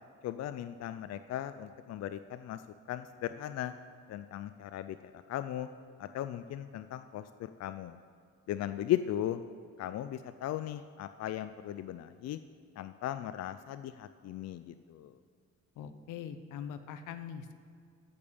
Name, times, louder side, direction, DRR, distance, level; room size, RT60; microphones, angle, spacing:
voice 1, 0.2-2.6 2.9-3.7 4.1-5.7 6.0-8.0 8.5-9.4 9.8-12.4 12.8-15.2, left 12 dB, 60° left, 11 dB, 0.4 m, -37 dB
voice 2, 15.8-17.6, left 8 dB, 85° left, 11 dB, 0.8 m, -42 dB
13.5 x 5.2 x 7.0 m, 2.2 s
cardioid pair, 90°, 30 cm